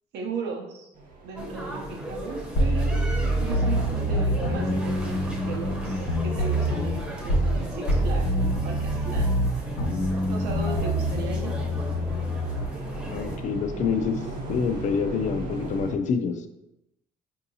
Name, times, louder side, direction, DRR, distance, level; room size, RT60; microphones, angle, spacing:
voice 1, 0.1-0.9 1.2-9.4 10.3-11.6, right 4 dB, 80° right, 1 dB, 0.7 m, -36 dB
sound 1, 0.9-15.9, right 2 dB, 50° right, 0.9 m, -37 dB
sound 2, 1.4-13.4, equal, 5° right, 0.7 m, -37 dB
sound 3, 2.6-7.6 7.9-12.7, equal, 90° left, 1.1 m, -26 dB
voice 2, 13.1-14.2 14.5-16.5, left 6 dB, 45° left, 8 dB, 0.4 m, -26 dB
4.6 x 2.7 x 2.7 m, 0.87 s
cardioid pair, 110°, 17 cm